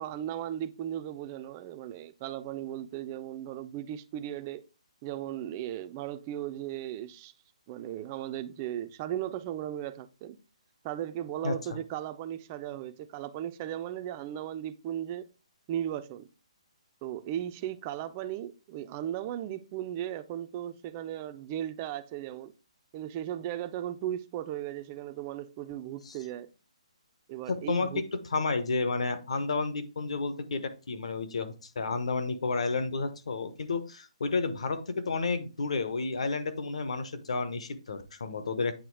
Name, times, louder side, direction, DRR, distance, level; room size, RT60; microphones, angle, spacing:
voice 1, 0.0-4.6 5.0-7.3 7.7-10.4 10.8-15.3 15.7-16.3 17.0-22.5 22.9-26.5 27.3-28.1, right 11 dB, 15° right, 0.3 m, -36 dB
voice 2, 11.4-11.8 26.1-26.2 27.5-28.0 28.3-38.7, left 3 dB, 60° left, 1.1 m, -31 dB
8.6 x 3.1 x 4.7 m
hypercardioid pair, 175°, 4 cm